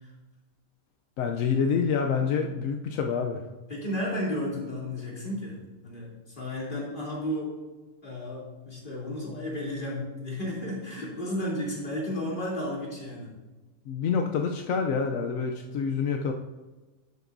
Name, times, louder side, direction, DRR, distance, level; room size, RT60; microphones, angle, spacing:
voice 1, 1.2-3.4 13.9-16.3, left 6 dB, 85° left, 3 dB, 1.0 m, -27 dB
voice 2, 3.7-5.6 5.8-6.1 6.4-7.5 8.0-13.3, left 1 dB, 40° left, -5 dB, 3.0 m, -33 dB
11.0 x 8.0 x 2.6 m, 1.2 s
omnidirectional pair, 1.3 m